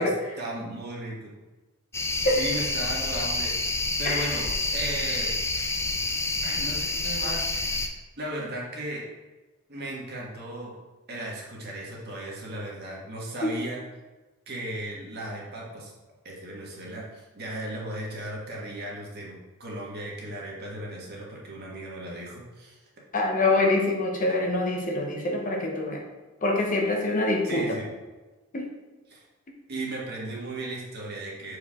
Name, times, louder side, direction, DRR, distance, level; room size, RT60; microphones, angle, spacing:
voice 1, 0.4-1.3 2.3-5.8 6.4-9.0 9.7-10.7 11.1-13.8 14.5-15.9 16.2-22.8 27.4-27.9 29.1-29.2 29.7-31.6, right 1 dB, 50° right, -3 dB, 1.6 m, -36 dB
sound 1, 1.9-7.9, left 2 dB, 10° left, 0.5 m, -28 dB
voice 2, 4.0-4.4 13.4-13.6 23.1-26.0 26.4-27.8 28.5-28.7, left 2 dB, 40° left, 1 dB, 1.0 m, -25 dB
6.7 x 4.8 x 3.7 m, 1.2 s
head